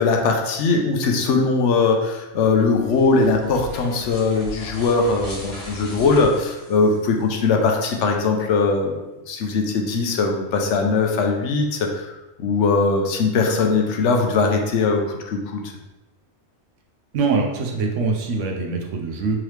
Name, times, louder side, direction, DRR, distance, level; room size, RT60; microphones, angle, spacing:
voice 1, 0.0-8.9 9.3-12.1 12.4-15.6, left 4 dB, 80° left, 2 dB, 0.9 m, -20 dB
sound 1, 2.6-7.4, equal, 60° left, 1.2 m, -38 dB
voice 2, 17.1-19.4, right 4 dB, 80° right, 1 dB, 1.0 m, -23 dB
3.6 x 3.0 x 3.2 m, 1.0 s
omnidirectional pair, 1.2 m